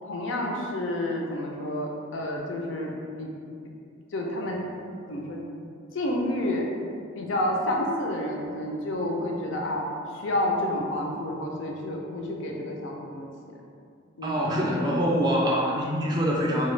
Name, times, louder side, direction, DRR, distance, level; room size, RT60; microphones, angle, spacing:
voice 1, 0.0-2.9 3.2-3.3 4.1-4.7 5.1-5.4 5.9-6.7 7.1-13.6 14.2-15.3, left 1 dB, 65° left, 0 dB, 0.5 m, -30 dB
voice 2, 14.2-16.7, equal, 20° right, -3 dB, 0.4 m, -25 dB
3.7 x 2.2 x 3.2 m, 2.3 s
head